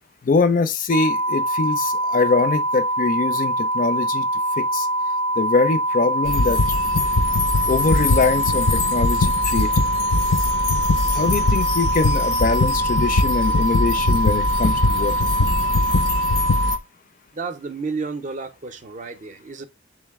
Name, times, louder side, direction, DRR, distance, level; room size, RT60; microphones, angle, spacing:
voice 1, 0.2-4.3 4.6-4.9 5.4-6.6 7.7-9.8 11.1-15.3, left 4 dB, 45° left, 0.4 m, -23 dB
sound 1, 0.9-16.8, right 1 dB, 85° right, 0.6 m, -23 dB
sound 2, 6.3-16.8, left 2 dB, 90° left, 0.7 m, -22 dB
voice 2, 17.3-19.7, right 4 dB, 40° right, 0.5 m, -31 dB
3.7 x 3.1 x 3.4 m
head